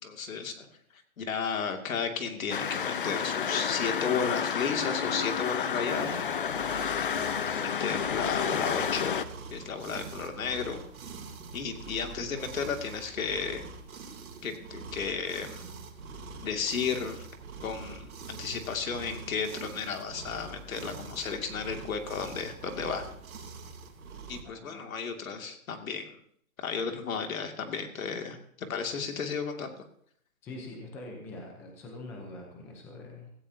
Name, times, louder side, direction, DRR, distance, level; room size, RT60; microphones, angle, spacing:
voice 1, 0.0-0.6 0.9-6.1 7.0-9.2 9.5-10.8 11.5-13.7 14.4-15.6 16.4-17.3 17.6-23.0 24.3-26.2 26.6-29.8, left 6 dB, 70° left, 4 dB, 2.6 m, -33 dB
sound 1, 2.5-9.3, left 7 dB, 40° left, 0.5 m, -30 dB
Purring Cat - Schnurrende Katze, 5.8-24.4, right 4 dB, 85° right, 3.4 m, -44 dB
voice 2, 24.4-25.0 30.4-33.3, left 2 dB, 5° left, 1 dB, 0.8 m, -44 dB
16.5 x 16.0 x 2.9 m, 0.64 s
hypercardioid pair, 175°, 42 cm